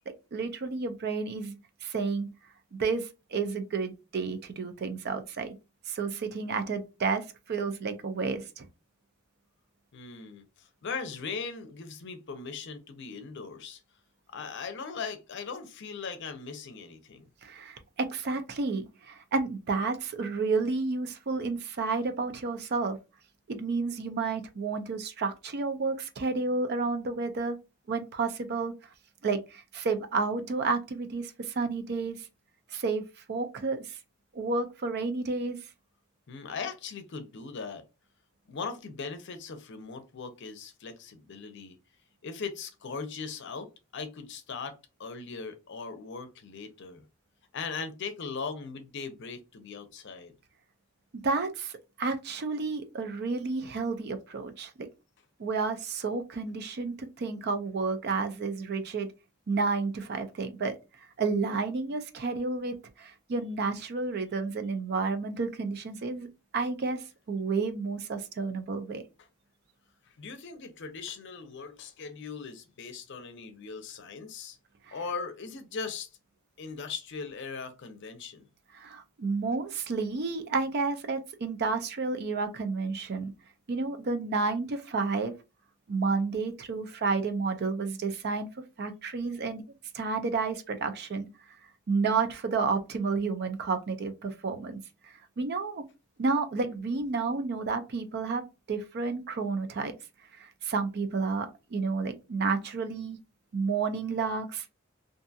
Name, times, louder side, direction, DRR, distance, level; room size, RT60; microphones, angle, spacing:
voice 1, 0.3-2.3 2.7-5.5 5.9-8.6 17.4-23.0 23.5-27.6 27.9-28.7 29.2-32.3 32.7-34.0 34.3-35.6 51.2-54.9 55.4-59.1 59.5-60.8 61.2-66.3 66.5-69.0 74.9-75.0 78.7-83.3 83.7-85.3 85.9-88.5 88.8-89.6 89.9-91.3 91.9-95.8 96.2-99.9 100.4-103.2 103.5-104.7, right 4 dB, 50° right, 0.5 m, -31 dB
voice 2, 9.9-13.8 14.3-17.3 36.3-37.8 38.5-41.8 42.2-47.0 47.5-50.3 70.1-74.6 74.9-76.1 76.6-78.5, left 5 dB, 60° left, 0.6 m, -39 dB
2.6 x 2.3 x 2.6 m
head